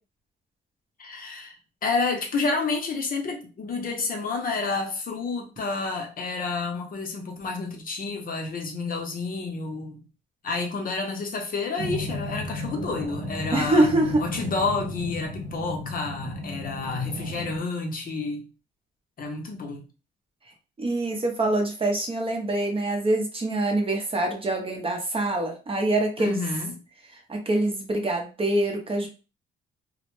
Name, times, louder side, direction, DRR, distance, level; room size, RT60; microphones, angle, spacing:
voice 1, 1.0-1.5 1.8-10.0 10.4-13.9 14.2-18.4 19.2-19.8 26.2-26.8, left 3 dB, 45° left, 3 dB, 0.6 m, -29 dB
sound 1, 11.8-17.6, left 1 dB, 65° right, 0.7 m, -34 dB
voice 2, 13.5-14.2 20.8-26.4 27.3-29.1, right 2 dB, 30° right, 2 dB, 0.7 m, -25 dB
2.1 x 2.1 x 3.0 m, 0.33 s
cardioid pair, 90°, 20 cm